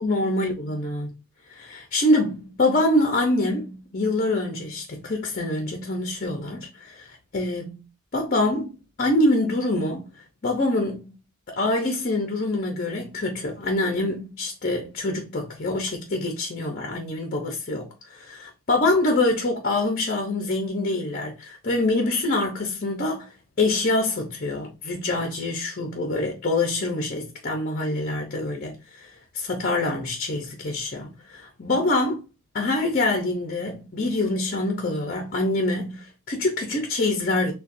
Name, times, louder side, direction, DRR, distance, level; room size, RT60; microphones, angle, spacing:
voice 1, 0.0-1.2 1.5-7.8 8.1-10.1 10.4-11.1 11.5-23.3 23.6-32.2 32.5-37.5, left 2 dB, 45° left, 0.8 m, -25 dB
6.7 x 2.3 x 2.6 m
head